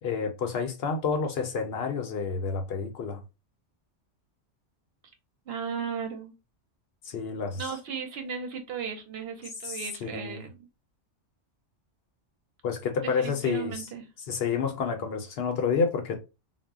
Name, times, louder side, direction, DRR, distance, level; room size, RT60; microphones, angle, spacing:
voice 1, 0.0-3.2 7.0-7.6 9.6-10.4 12.6-13.7 14.3-16.2, left 5 dB, 65° left, 0.7 m, -29 dB
voice 2, 5.5-6.3 7.6-10.5 13.0-14.0, right 6 dB, 65° right, 0.7 m, -36 dB
2.1 x 2.0 x 3.4 m
omnidirectional pair, 1.2 m